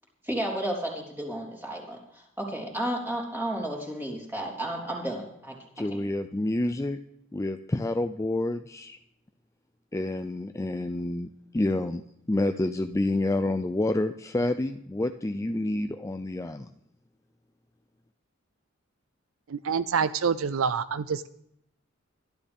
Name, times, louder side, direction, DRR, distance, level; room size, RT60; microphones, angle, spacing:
voice 1, 0.2-5.6, right 1 dB, 10° right, -2 dB, 3.6 m, -32 dB
voice 2, 5.8-7.0 7.3-9.0 9.9-11.3 11.5-12.0 12.3-16.7, left 2 dB, 15° left, 7 dB, 0.4 m, -28 dB
voice 3, 19.5-21.3, right 6 dB, 70° right, 14 dB, 0.5 m, -27 dB
22.0 x 12.5 x 3.6 m, 0.75 s
head